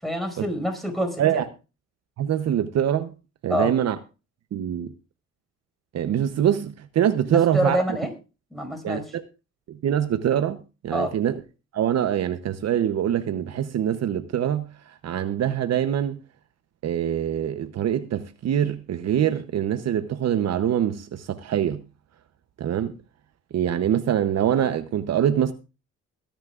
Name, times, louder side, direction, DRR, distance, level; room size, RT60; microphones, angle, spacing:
voice 1, 0.0-1.5 3.5-3.7 7.2-8.1 8.5-9.2 10.9-11.2, equal, ahead, 5.4 m, -27 dB
voice 2, 2.2-3.1 3.4-4.0 4.5-4.9 5.9-7.8 8.8-9.0 9.7-10.6 10.8-11.3 11.7-16.2 16.8-21.8 22.6-23.0 23.5-25.5, right 10 dB, 60° right, 0.9 m, -24 dB
22.0 x 10.5 x 2.5 m
cardioid pair, 95°, 30 cm